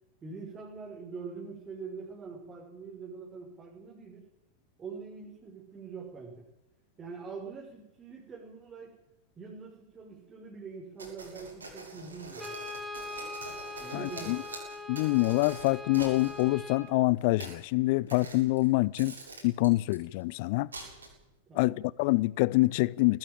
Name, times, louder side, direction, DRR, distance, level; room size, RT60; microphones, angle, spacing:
voice 1, 0.2-4.2 4.8-6.4 7.0-9.0 9.4-12.6 13.8-14.4 21.5-21.8, right 5 dB, 20° right, 5.5 m, -44 dB
sound 1, 11.0-16.5 17.2-17.6 18.1-18.7 19.0-20.0 20.7-21.3, right 3 dB, 75° right, 7.4 m, -45 dB
Brass instrument, 12.4-16.9, left 2 dB, ahead, 3.8 m, -41 dB
voice 2, 13.9-14.4 14.9-19.1 19.4-20.7 21.5-23.2, left 21 dB, 50° left, 0.6 m, -26 dB
19.5 x 15.0 x 9.0 m
figure-of-eight pair, 90°, 0 cm